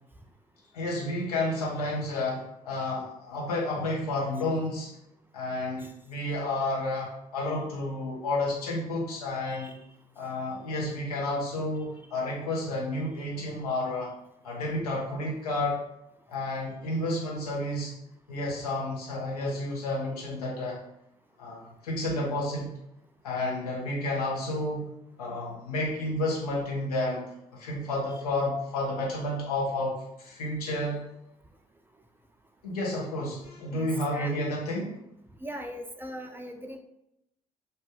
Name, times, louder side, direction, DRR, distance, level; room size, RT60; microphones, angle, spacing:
voice 1, 0.7-4.9 5.3-9.7 10.2-14.1 14.4-15.8 16.3-17.9 18.3-20.8 21.4-22.7 23.2-24.9 25.2-31.0 32.6-34.9, left 1 dB, 85° left, -3 dB, 0.8 m, -31 dB
voice 2, 9.5-9.8 33.7-34.3 35.4-36.8, equal, 10° right, 5 dB, 0.4 m, -40 dB
2.6 x 2.2 x 3.4 m, 0.81 s
hypercardioid pair, 50°, 19 cm